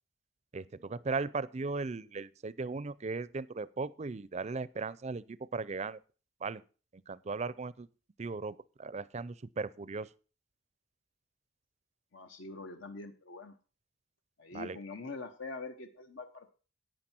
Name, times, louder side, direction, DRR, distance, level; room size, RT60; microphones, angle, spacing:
voice 1, 0.5-6.0 6.4-6.6 6.9-7.9 8.2-10.1 14.5-14.8, right 4 dB, 35° right, 0.5 m, -37 dB
voice 2, 12.1-13.5 14.4-16.5, left 3 dB, 70° left, 1.0 m, -44 dB
11.5 x 9.0 x 4.4 m
head